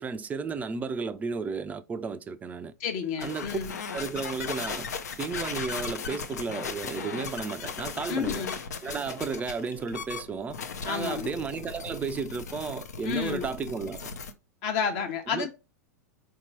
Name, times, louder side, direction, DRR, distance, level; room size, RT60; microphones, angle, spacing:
voice 1, 0.0-2.7 3.2-3.6 3.9-4.9 5.2-8.4 8.8-10.6 10.8-14.1 15.3-15.5, right 5 dB, 15° right, 0.4 m, -33 dB
voice 2, 2.8-3.7 8.1-8.5 10.8-11.3 13.0-13.4 14.6-15.5, left 7 dB, 50° left, 0.9 m, -30 dB
sound 1, 3.2-14.3, left 5 dB, 70° left, 0.6 m, -37 dB
4.5 x 2.8 x 2.8 m
figure-of-eight pair, 95°, 9 cm